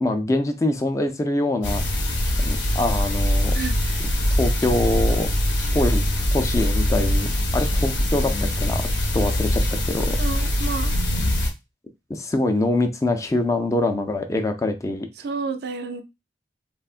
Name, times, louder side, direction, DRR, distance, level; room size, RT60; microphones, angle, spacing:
voice 1, 0.0-1.8 2.4-3.6 4.4-5.3 5.7-6.0 6.3-10.4 12.1-15.1, left 2 dB, 15° left, 0.3 m, -24 dB
sound 1, 1.6-11.5, left 1 dB, 85° left, 0.6 m, -22 dB
voice 2, 3.5-4.0 10.2-10.9 15.2-16.0, right 4 dB, 60° right, 0.4 m, -30 dB
3.5 x 2.2 x 2.4 m
head